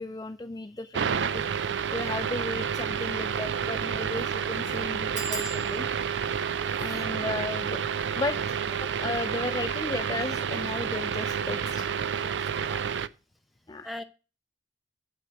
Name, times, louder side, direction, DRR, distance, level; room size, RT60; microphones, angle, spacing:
voice 1, 0.0-5.9 6.8-7.9 8.1-8.4 8.8-11.9 13.7-13.9, left 2 dB, 20° left, 9 dB, 0.4 m, -35 dB
sound 1, 0.9-13.1, right 7 dB, 80° right, 0.5 m, -30 dB
sound 2, 2.0-2.2 2.6-2.7 2.9-3.0 3.6-3.8 4.1-4.2 5.1-10.4 11.1-11.6 11.9-12.3 12.5-12.6, right 3 dB, 40° right, 1.7 m, -44 dB
voice 2, 12.2-12.9 13.8-14.0, left 1 dB, ahead, 8 dB, 0.8 m, -42 dB
8.0 x 5.9 x 6.6 m, 0.32 s
head